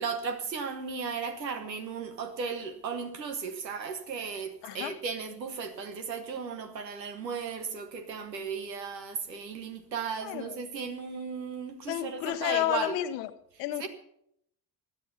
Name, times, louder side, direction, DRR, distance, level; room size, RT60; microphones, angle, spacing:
voice 1, 0.0-13.0 13.8-13.9, right 5 dB, 85° right, 1.3 m, -35 dB
voice 2, 4.6-4.9 10.2-10.6 11.9-13.3 13.6-13.9, left 14 dB, 75° left, 1.1 m, -31 dB
16.0 x 10.5 x 5.5 m
figure-of-eight pair, 50°, 49 cm